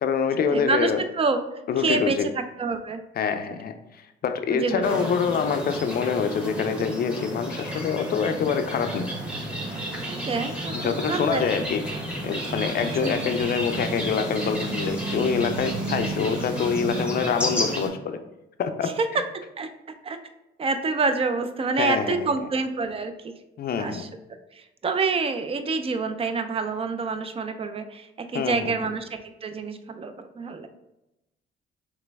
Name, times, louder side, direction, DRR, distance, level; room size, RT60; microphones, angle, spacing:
voice 1, 0.0-1.0 1.7-2.3 3.2-9.1 10.7-11.8 12.2-18.2 18.6-18.9 21.8-22.2 23.6-24.1 28.3-28.7, left 6 dB, 50° left, 8 dB, 0.4 m, -26 dB
voice 2, 0.5-1.4 1.8-3.0 4.5-5.1 10.1-11.4 13.0-13.2 18.8-19.1 19.6-19.7 20.0-20.2 20.6-23.3 23.8-24.1 24.5-30.7, right 4 dB, 30° right, 9 dB, 0.4 m, -27 dB
sound 1, 4.8-17.9, right 1 dB, 5° right, 1.0 m, -32 dB
sound 2, 8.7-17.1, right 3 dB, 70° right, 0.8 m, -38 dB
3.3 x 3.0 x 3.4 m, 0.91 s
cardioid pair, 90°, 20 cm